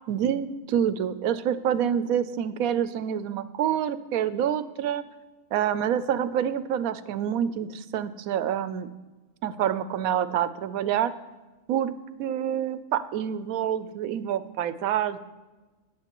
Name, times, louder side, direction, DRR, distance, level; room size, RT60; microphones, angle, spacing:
voice 1, 0.1-5.0 5.5-8.9 9.4-11.1 11.7-11.9 12.2-15.2, right 9 dB, 70° right, 13 dB, 0.9 m, -27 dB
19.0 x 7.7 x 3.0 m, 1.2 s
omnidirectional pair, 1.7 m